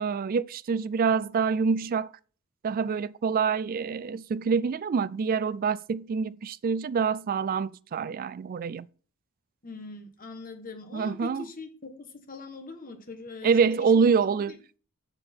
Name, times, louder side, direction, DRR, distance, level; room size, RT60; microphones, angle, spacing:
voice 1, 0.0-2.1 2.6-8.9 10.9-11.4 13.4-14.6, right 5 dB, 40° right, 0.3 m, -26 dB
voice 2, 9.6-14.1 14.5-14.6, left 3 dB, 40° left, 1.4 m, -42 dB
6.9 x 6.7 x 4.4 m
head